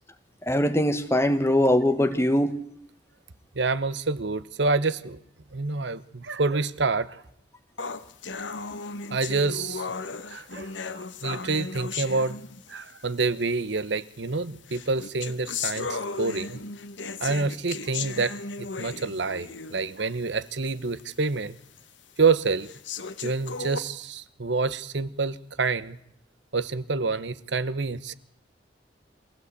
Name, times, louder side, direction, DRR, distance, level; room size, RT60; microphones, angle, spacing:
voice 1, 0.5-2.5, left 1 dB, 15° left, 10 dB, 1.3 m, -22 dB
voice 2, 3.6-5.2 5.5-7.2 9.1-9.9 10.3-12.4 12.7-16.6 17.2-21.6 22.2-22.7 23.2-26.0 26.5-28.1, right 4 dB, 75° right, 15 dB, 1.0 m, -27 dB
sound 1, 7.8-12.9 13.8-13.9 14.7-19.9 20.4-20.5 21.0-21.1 21.8-21.9 22.6-23.8, left 4 dB, 85° left, 1.3 m, -35 dB
23.0 x 16.0 x 8.3 m, 0.73 s
head